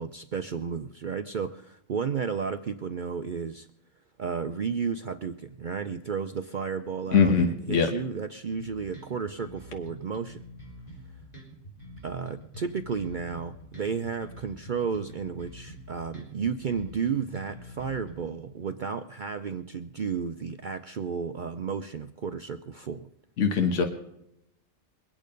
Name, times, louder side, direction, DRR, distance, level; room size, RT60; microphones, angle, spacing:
voice 1, 0.0-3.7 4.2-10.4 12.0-23.1, right 6 dB, 50° right, 8 dB, 0.6 m, -33 dB
voice 2, 7.1-7.9 23.4-23.8, left 5 dB, 70° left, 5 dB, 1.5 m, -22 dB
sound 1, 8.5-18.1, equal, 30° left, 4.2 m, -46 dB
23.0 x 8.8 x 5.2 m, 0.79 s
omnidirectional pair, 1.3 m